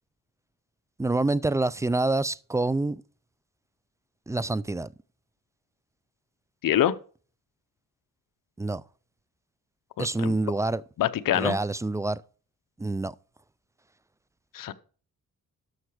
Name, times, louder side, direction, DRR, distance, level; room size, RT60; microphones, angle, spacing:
voice 1, 1.0-3.0 4.3-4.9 8.6-8.8 10.0-10.8 11.3-12.2 12.8-13.1, right 2 dB, 10° right, 0.3 m, -26 dB
voice 2, 6.6-6.9 10.0-10.4 11.0-11.6 14.5-14.7, left 11 dB, 70° left, 0.8 m, -25 dB
13.0 x 5.8 x 4.9 m
cardioid pair, 90°, 34 cm